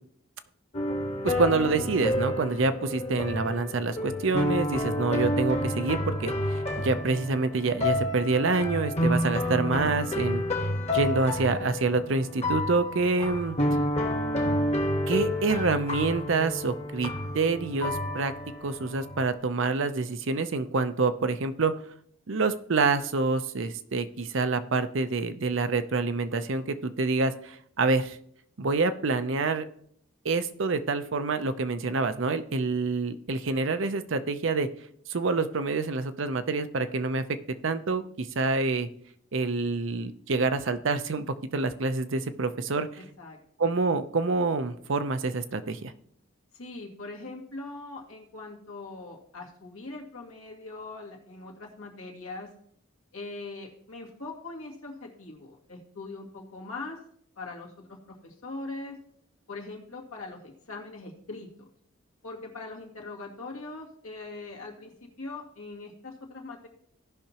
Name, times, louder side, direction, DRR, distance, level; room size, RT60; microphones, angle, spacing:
sound 1, 0.7-19.3, left 1 dB, 30° left, 1.2 m, -29 dB
voice 1, 1.2-10.4 10.9-13.6 15.1-18.3 18.6-21.7 22.3-28.2 28.6-29.7 30.2-34.7 35.1-37.2 37.6-38.9 39.3-42.9 43.6-45.9, right 3 dB, 65° right, 10 dB, 0.6 m, -27 dB
voice 2, 46.5-52.5 53.1-57.0 57.4-59.0 59.5-61.7 62.2-66.7, left 3 dB, 80° left, -1 dB, 2.1 m, -41 dB
16.5 x 5.8 x 2.9 m, 0.67 s
head